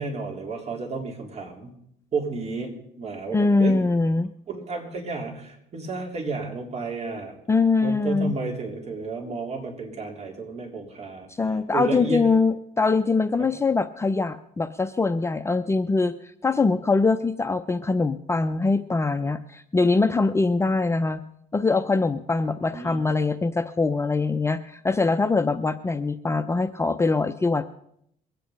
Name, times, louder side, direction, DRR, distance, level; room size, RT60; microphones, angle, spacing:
voice 1, 0.0-1.7 2.1-3.8 4.5-7.4 7.8-11.3 11.7-12.2 13.4-13.5 22.7-23.0, right 3 dB, 40° right, 1 dB, 3.7 m, -32 dB
voice 2, 3.3-4.3 7.5-8.3 11.4-16.1 16.4-21.2 21.5-27.8, left 3 dB, 15° left, 10 dB, 0.5 m, -23 dB
22.5 x 9.1 x 5.2 m, 0.72 s
cardioid pair, 110°, 17 cm